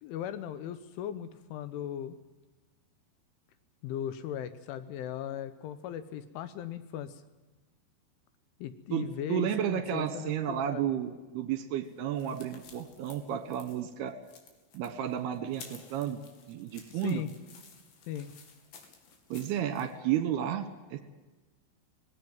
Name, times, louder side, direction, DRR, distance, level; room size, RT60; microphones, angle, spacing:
voice 1, 0.0-2.2 3.8-7.2 8.6-10.9 16.9-17.3 18.1-18.3, left 10 dB, 80° left, 12 dB, 3.2 m, -38 dB
voice 2, 8.9-14.1 14.7-16.2 16.5-17.2 19.3-21.0, right 10 dB, 70° right, 10 dB, 2.8 m, -32 dB
sound 1, 11.8-19.9, left 5 dB, 60° left, 4.7 m, -54 dB
19.5 x 17.0 x 9.1 m, 1.2 s
omnidirectional pair, 5.9 m